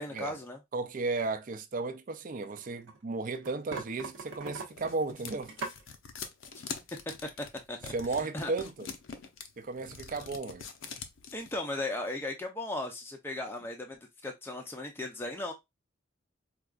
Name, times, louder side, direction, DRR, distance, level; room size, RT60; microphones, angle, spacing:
voice 1, 0.0-0.6 6.6-6.7 7.7-7.9 8.3-8.5 11.3-15.5, left 2 dB, 10° left, 0.5 m, -37 dB
voice 2, 0.7-5.5 7.9-8.9 9.6-10.7, right 3 dB, 45° right, 0.4 m, -34 dB
sound 1, 2.1-3.0 3.3-5.8, right 3 dB, 75° right, 0.7 m, -41 dB
sound 2, 4.3-11.6, left 6 dB, 75° left, 0.6 m, -44 dB
4.6 x 2.3 x 2.4 m
head